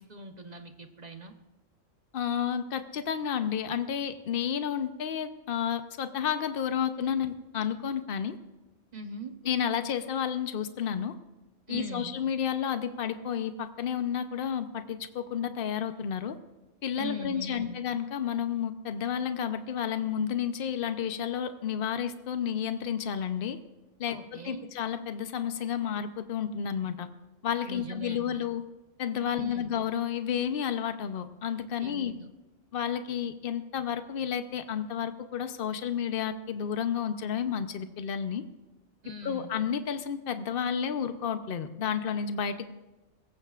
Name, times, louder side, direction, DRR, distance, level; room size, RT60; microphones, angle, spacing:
voice 1, 0.0-1.4 8.9-9.4 11.7-12.1 16.9-17.8 24.1-24.7 27.7-28.5 29.3-29.7 31.8-32.3 39.0-39.5, right 2 dB, 35° right, 6 dB, 0.9 m, -41 dB
voice 2, 2.1-8.4 9.4-11.1 11.7-16.4 16.8-23.6 24.0-27.1 27.4-28.6 29.0-32.1 32.7-38.4 39.2-42.7, left 8 dB, 50° left, 10 dB, 0.9 m, -31 dB
24.0 x 15.0 x 2.5 m, 1.1 s
omnidirectional pair, 1.4 m